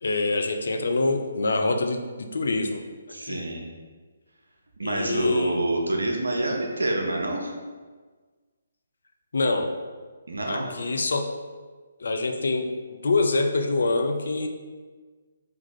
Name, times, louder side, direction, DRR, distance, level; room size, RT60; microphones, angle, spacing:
voice 1, 0.0-2.8 3.3-3.4 4.8-5.6 9.3-9.7 10.5-11.3 12.0-14.5, left 3 dB, 65° left, 5 dB, 0.4 m, -25 dB
voice 2, 3.1-3.6 4.8-7.5 10.3-10.7, right 1 dB, 75° right, 1 dB, 0.7 m, -27 dB
3.6 x 3.0 x 3.7 m, 1.4 s
figure-of-eight pair, 140°, 0 cm